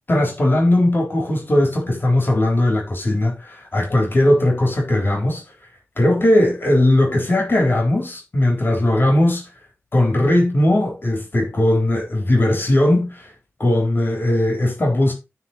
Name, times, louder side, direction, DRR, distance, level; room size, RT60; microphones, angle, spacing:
voice 1, 0.1-5.4 6.0-9.4 9.9-13.3 13.6-15.1, left 1 dB, 50° left, 3.8 m, -18 dB
9.7 x 4.5 x 4.4 m
wide cardioid pair, 70°, 5 cm